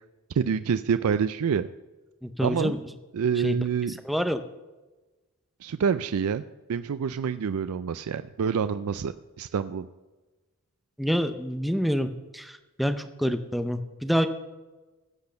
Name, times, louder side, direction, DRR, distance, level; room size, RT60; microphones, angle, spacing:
voice 1, 0.4-1.7 2.4-2.7 3.1-3.9 5.6-6.4 6.7-9.9, right 7 dB, 80° right, 12 dB, 0.4 m, -27 dB
voice 2, 2.2-2.8 3.4-3.6 4.0-4.4 11.0-14.3, equal, ahead, 8 dB, 0.6 m, -27 dB
16.0 x 6.2 x 6.5 m, 1.2 s
head